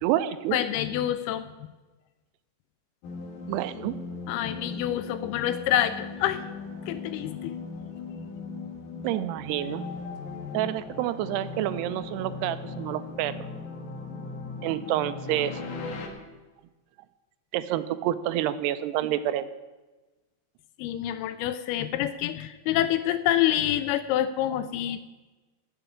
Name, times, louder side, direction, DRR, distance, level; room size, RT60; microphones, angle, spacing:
voice 1, 0.0-0.6 3.5-4.0 9.0-9.8 10.5-13.5 14.6-15.6 17.5-19.5, right 13 dB, 85° right, 13 dB, 2.6 m, -28 dB
voice 2, 0.5-1.4 4.3-6.4 6.9-7.6 20.8-25.0, left 12 dB, 80° left, 12 dB, 2.4 m, -27 dB
sound 1, 3.0-16.1, left 4 dB, 60° left, 2.5 m, -38 dB
10.0 x 7.8 x 9.4 m, 1.2 s
omnidirectional pair, 4.8 m